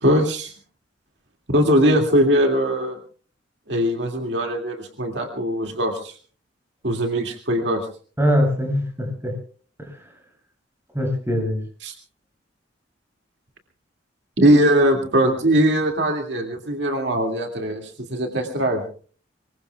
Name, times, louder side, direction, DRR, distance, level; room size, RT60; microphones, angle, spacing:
voice 1, 0.0-0.5 1.5-3.0 3.7-6.1 6.8-7.9 11.8-11.9 14.4-18.8, equal, 70° right, 2 dB, 2.2 m, -20 dB
voice 2, 8.2-9.4 9.8-10.0 10.9-11.6, equal, 15° right, 1 dB, 7.8 m, -22 dB
24.5 x 22.5 x 2.3 m, 0.43 s
head